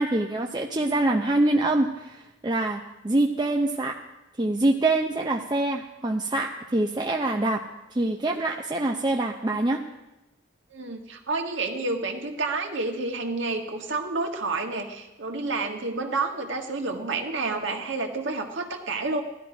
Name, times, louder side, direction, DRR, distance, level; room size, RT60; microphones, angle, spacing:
voice 1, 0.0-4.0 4.4-7.6 7.9-9.8, right 2 dB, 20° right, 2 dB, 0.6 m, -25 dB
voice 2, 10.7-19.2, right 3 dB, 75° right, 3 dB, 1.7 m, -29 dB
17.0 x 12.5 x 5.1 m, 0.99 s
head